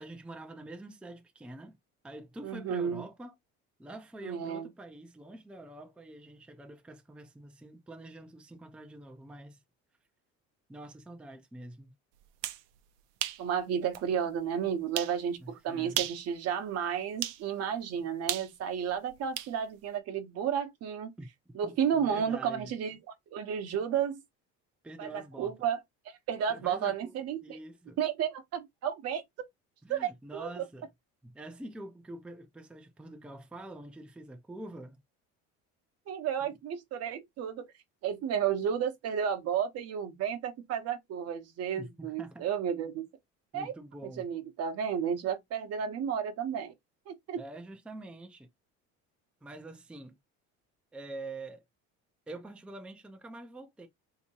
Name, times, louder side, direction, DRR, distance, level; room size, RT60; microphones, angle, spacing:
voice 1, 0.0-1.8 2.0-3.4 3.8-9.6 10.7-11.9 15.4-16.1 21.2-21.3 21.6-22.7 24.8-25.6 26.5-27.1 27.4-28.0 29.8-30.9 31.2-35.0 36.4-36.6 41.8-42.5 43.5-44.3 47.4-48.5 49.4-50.2 50.9-51.6 52.3-53.9, right 2 dB, 5° right, 0.5 m, -46 dB
voice 2, 2.4-3.0 4.2-4.7 13.4-21.1 21.5-23.0 23.3-24.2 25.0-25.8 26.3-27.6 28.0-29.2 29.9-30.6 36.1-37.7 38.0-43.1 43.5-43.7 44.2-46.7 47.1-47.4, right 8 dB, 55° right, 0.9 m, -32 dB
sound 1, 12.2-12.6 13.2-13.4 13.9-14.0 15.0-15.2 15.9-16.3 17.2-17.4 18.3-19.5, right 13 dB, 90° right, 0.6 m, -34 dB
3.5 x 2.9 x 2.8 m
cardioid pair, 135°, 30 cm